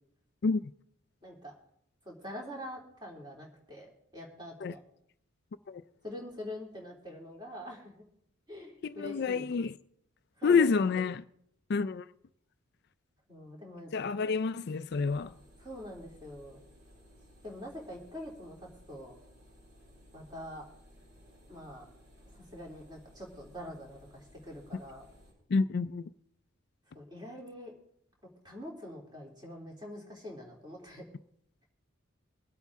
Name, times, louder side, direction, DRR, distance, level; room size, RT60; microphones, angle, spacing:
voice 1, 1.2-1.5 2.0-4.8 6.0-7.9 8.5-9.5 10.4-10.7 13.3-13.9 15.6-16.6 17.4-18.6 18.9-19.1 20.1-20.6 21.5-21.9 22.5-25.0 26.9-27.7 28.4-31.0, left 1 dB, 20° right, 3.2 m, -44 dB
voice 2, 8.8-9.7 10.4-11.2 11.7-12.0 13.9-15.3 25.5-26.0, left 5 dB, 50° left, 0.4 m, -28 dB
sound 1, 14.9-25.3, equal, 65° right, 7.1 m, -58 dB
24.0 x 8.3 x 3.6 m
head